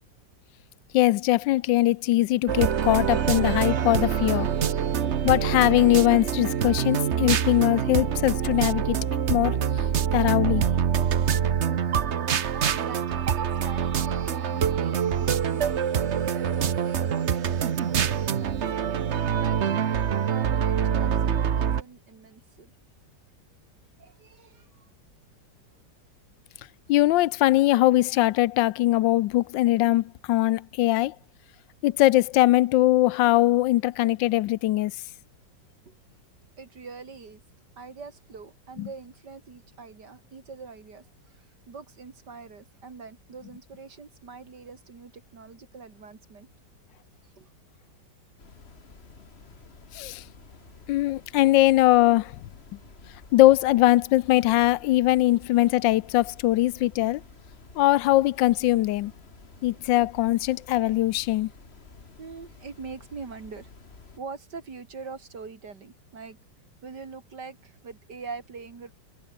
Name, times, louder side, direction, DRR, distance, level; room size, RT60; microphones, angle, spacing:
voice 1, 0.9-4.5 5.2-9.0 9.3-9.6 10.1-10.6 26.9-31.1 31.8-34.9 38.8-38.9 49.9-50.2 50.9-52.4 53.3-57.2 57.8-59.1 59.6-61.5, left 16 dB, 85° left, 1.3 m, -21 dB
sound 1, 2.5-21.8, right 8 dB, 45° right, 1.0 m, -25 dB
voice 2, 12.5-18.1 18.4-18.6 19.3-19.6 20.2-22.7 24.0-24.9 35.9-36.0 36.6-37.4 37.8-46.5 47.4-47.5 59.7-59.8 62.2-63.7 64.2-66.4 66.8-68.9, right 4 dB, 65° right, 3.3 m, -43 dB
sound 2, 48.4-64.2, left 4 dB, 35° left, 2.2 m, -51 dB
omnidirectional pair, 2.0 m